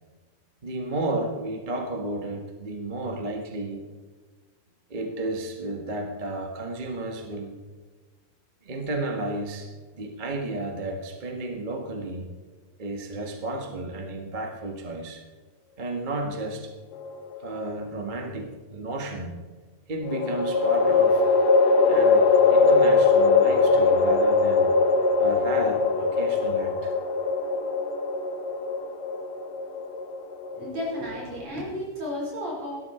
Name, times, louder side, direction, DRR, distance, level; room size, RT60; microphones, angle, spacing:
voice 1, 0.6-3.8 4.9-7.5 8.6-12.3 12.8-15.2 15.8-16.7 17.4-19.4 19.9-21.2 21.9-24.7 25.2-26.9, right 2 dB, 30° right, 3 dB, 0.9 m, -32 dB
sound 1, 17.0-17.8 20.1-31.4, left 4 dB, 60° left, 2.3 m, -21 dB
voice 2, 30.5-32.8, left 1 dB, 55° right, -2 dB, 5.7 m, -33 dB
17.0 x 13.0 x 4.4 m, 1.4 s
omnidirectional pair, 3.6 m